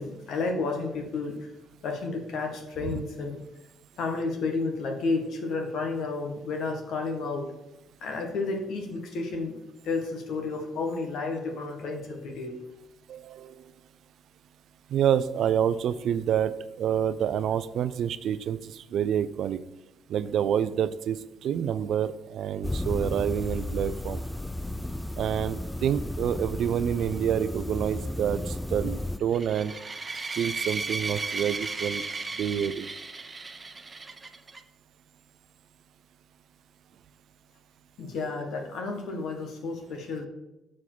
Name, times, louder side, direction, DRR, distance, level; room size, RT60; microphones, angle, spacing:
voice 1, 0.0-1.5 1.8-3.4 4.0-7.5 8.0-9.6 9.8-12.6 38.0-40.3, left 3 dB, 70° left, 3 dB, 1.8 m, -31 dB
voice 2, 13.1-13.5 14.9-19.6 20.1-24.2 25.2-29.7 30.4-32.0 32.4-32.9, right 9 dB, 70° right, 14 dB, 0.4 m, -28 dB
sound 1, 22.6-29.2, left 1 dB, 10° left, 0.4 m, -33 dB
sound 2, 29.3-34.6, right 3 dB, 30° right, 0.8 m, -35 dB
7.2 x 4.8 x 6.1 m, 0.96 s
supercardioid pair, 60°, 0 cm